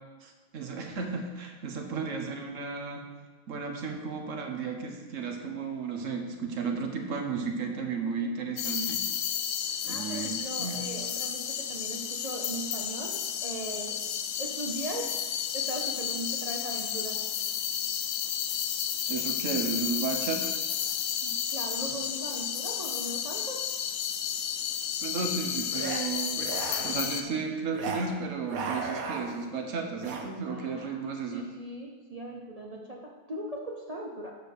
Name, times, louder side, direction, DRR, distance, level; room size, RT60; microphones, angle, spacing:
voice 1, 0.2-3.0 3.5-9.0 9.8-10.8 19.1-20.5 25.0-31.4, right 5 dB, 70° right, 4 dB, 1.3 m, -34 dB
voice 2, 8.0-8.4 9.6-14.0 14.4-15.1 15.5-17.2 21.2-23.6 30.5-31.0 31.3-34.4, right 1 dB, 35° right, -1 dB, 0.6 m, -39 dB
sound 1, 8.6-27.2, left 8 dB, 85° left, 1.0 m, -32 dB
sound 2, 25.7-26.0 26.3-27.1 27.7-28.1 28.4-29.5 30.0-30.3, right 4 dB, 90° right, 1.3 m, -36 dB
6.5 x 5.0 x 6.5 m, 1.3 s
omnidirectional pair, 1.4 m